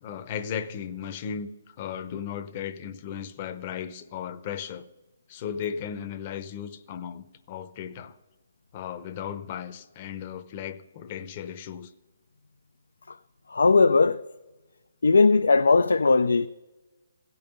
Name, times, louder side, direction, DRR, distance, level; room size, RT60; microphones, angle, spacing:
voice 1, 0.0-1.5 1.8-4.9 5.3-8.2 8.7-11.9, left 8 dB, 35° left, 0.7 m, -36 dB
voice 2, 13.5-14.2 15.0-16.5, left 4 dB, 90° left, 0.3 m, -19 dB
16.0 x 5.5 x 6.7 m
hypercardioid pair, 155°, 0 cm